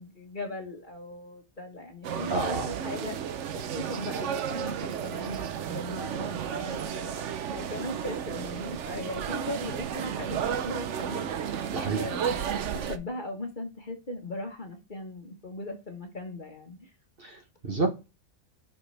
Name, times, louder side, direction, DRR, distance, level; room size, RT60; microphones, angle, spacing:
voice 1, 0.0-7.2 7.5-10.4 10.6-11.7 12.0-16.9, left 2 dB, 35° left, 1.5 m, -39 dB
sound 1, 2.0-13.0, right 8 dB, 60° right, 0.9 m, -33 dB
voice 2, 2.3-2.7 11.7-12.0 17.2-17.9, right 3 dB, 40° right, 1.4 m, -29 dB
8.0 x 6.1 x 3.4 m
omnidirectional pair, 1.6 m